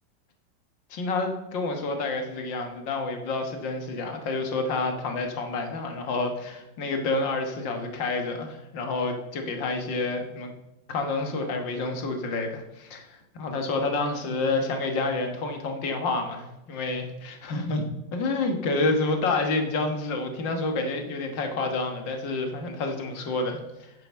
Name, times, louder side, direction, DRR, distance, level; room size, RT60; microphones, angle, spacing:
voice 1, 0.9-10.5 10.9-17.9 18.1-23.9, left 3 dB, 80° left, 4 dB, 2.1 m, -29 dB
9.4 x 6.9 x 6.8 m, 0.90 s
omnidirectional pair, 2.0 m